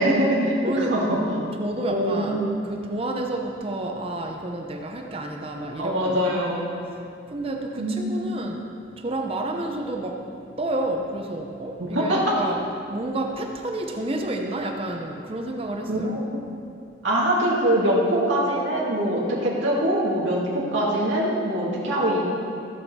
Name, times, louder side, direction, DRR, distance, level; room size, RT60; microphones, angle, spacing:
voice 1, 0.0-1.2 1.9-2.6 5.8-6.7 7.8-8.3 11.8-12.4 15.9-16.2 17.0-22.2, right 1 dB, 90° right, -5 dB, 1.9 m, -23 dB
voice 2, 0.6-8.6 9.0-10.2 10.6-16.6, right 2 dB, 30° right, 2 dB, 0.7 m, -30 dB
15.0 x 6.4 x 4.3 m, 2.5 s
head